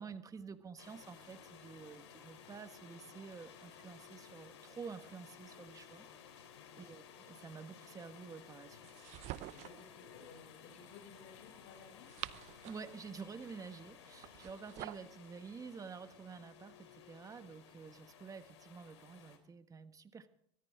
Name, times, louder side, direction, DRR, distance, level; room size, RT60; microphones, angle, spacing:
voice 1, 0.0-8.8 12.6-20.3, right 5 dB, 25° right, 9 dB, 1.5 m, -50 dB
sound 1, 0.8-19.4, left 7 dB, 80° left, 3.3 m, -57 dB
voice 2, 6.5-6.9 9.3-12.1, left 5 dB, 60° left, 3 dB, 6.5 m, -57 dB
sound 2, 8.8-9.9 11.8-13.0 14.2-15.1, right 16 dB, 50° right, 0.7 m, -47 dB
24.0 x 13.5 x 3.7 m, 0.69 s
hypercardioid pair, 95°, 15 cm